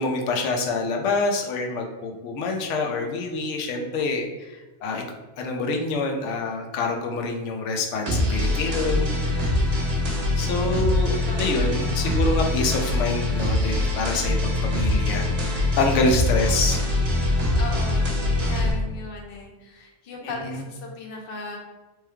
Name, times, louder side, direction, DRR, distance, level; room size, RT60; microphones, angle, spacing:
voice 1, 0.0-4.5 4.8-5.0 5.4-9.8 10.4-16.8 20.2-20.6, left 3 dB, 85° left, 2 dB, 0.9 m, -26 dB
sound 1, 8.1-18.7, left 2 dB, 40° right, 0.7 m, -23 dB
voice 2, 11.3-12.3 17.6-21.6, left 3 dB, 60° left, 0 dB, 0.8 m, -38 dB
3.2 x 3.0 x 2.2 m, 1.1 s
omnidirectional pair, 1.2 m